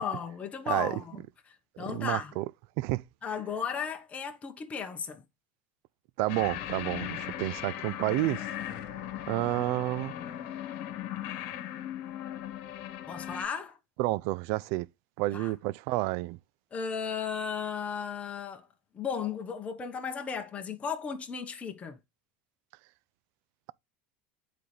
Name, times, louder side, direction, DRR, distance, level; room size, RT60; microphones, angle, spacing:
voice 1, 0.0-2.3 3.2-5.2 13.1-13.8 15.3-15.5 16.7-18.7 18.9-22.0, left 6 dB, 25° left, 1.2 m, -35 dB
voice 2, 1.9-2.5 2.8-3.0 6.2-8.5 9.3-10.1 14.0-14.9 15.2-16.4, right 19 dB, 65° right, 0.4 m, -30 dB
sound 1, 6.3-13.5, left 11 dB, 65° left, 1.4 m, -38 dB
9.1 x 4.2 x 3.3 m
supercardioid pair, 100°, 5 cm